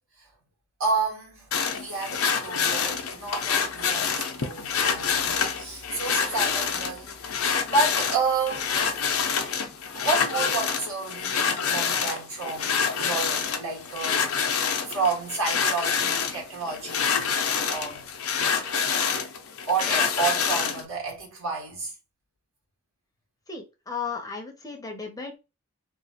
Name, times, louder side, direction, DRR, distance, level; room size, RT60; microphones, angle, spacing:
voice 1, 0.8-9.0 9.9-17.4 17.7-18.1 19.7-21.9, right 4 dB, 80° right, 1.7 m, -30 dB
sound 1, 1.5-20.8, left 6 dB, 80° left, 0.6 m, -27 dB
voice 2, 23.5-25.4, left 5 dB, 15° left, 0.6 m, -35 dB
2.9 x 2.3 x 2.8 m
head